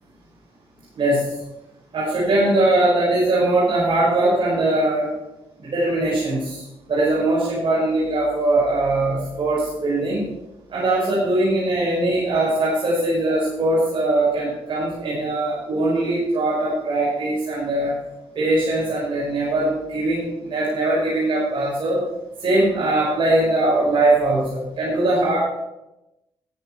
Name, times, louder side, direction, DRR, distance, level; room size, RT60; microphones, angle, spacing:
voice 1, 0.9-1.3 1.9-5.1 5.6-10.3 10.7-17.9 18.3-22.0 22.4-25.4, right 2 dB, 60° right, -7 dB, 5.3 m, -21 dB
13.0 x 9.3 x 4.5 m, 0.94 s
cardioid pair, 65°, 10 cm